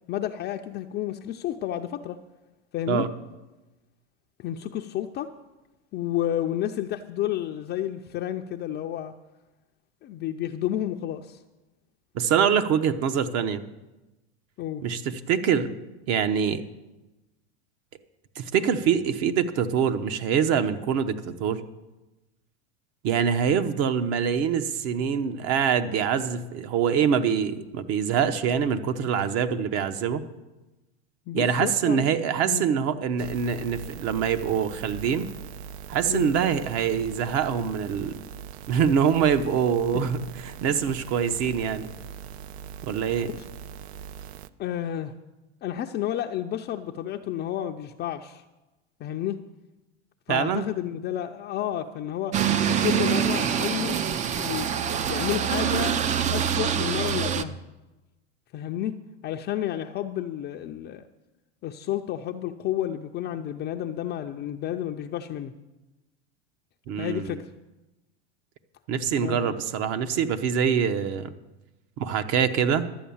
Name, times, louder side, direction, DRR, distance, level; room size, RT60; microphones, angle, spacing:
voice 1, 0.1-2.2 2.7-3.1 4.4-5.3 5.9-9.1 10.0-11.4 14.6-14.8 31.3-32.7 36.1-36.3 39.9-40.0 43.3-43.4 44.6-45.1 45.6-48.4 49.0-49.4 50.3-52.4 52.7-54.0 54.4-56.0 56.3-57.6 58.5-58.9 59.2-61.0 61.6-65.5 67.0-67.5 69.2-69.6, left 11 dB, 30° left, 4 dB, 0.5 m, -31 dB
voice 2, 12.1-13.6 14.8-15.7 16.1-16.6 18.4-21.6 23.0-30.2 31.3-35.3 35.9-38.2 38.7-41.9 42.8-43.3 50.3-50.6 66.9-67.4 68.9-71.3 72.0-72.8, right 7 dB, 45° right, 10 dB, 0.9 m, -24 dB
sound 1, 33.2-44.5, right 8 dB, 65° right, 0.6 m, -41 dB
sound 2, 52.3-57.4, right 8 dB, 20° right, 0.4 m, -25 dB
12.0 x 8.4 x 7.1 m, 1.1 s
supercardioid pair, 125°, 35 cm